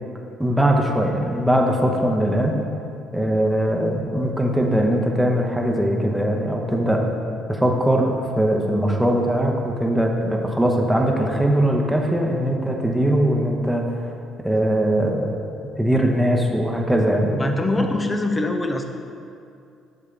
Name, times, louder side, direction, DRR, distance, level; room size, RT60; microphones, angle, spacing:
voice 1, 0.4-2.6 3.1-7.0 7.5-13.8 14.4-15.4 15.8-17.5 17.8-17.9, right 1 dB, 5° right, 0 dB, 1.0 m, -21 dB
voice 2, 17.4-18.8, left 2 dB, 20° left, 4 dB, 0.7 m, -23 dB
11.0 x 3.6 x 3.4 m, 2.5 s
hypercardioid pair, 55°, 0 cm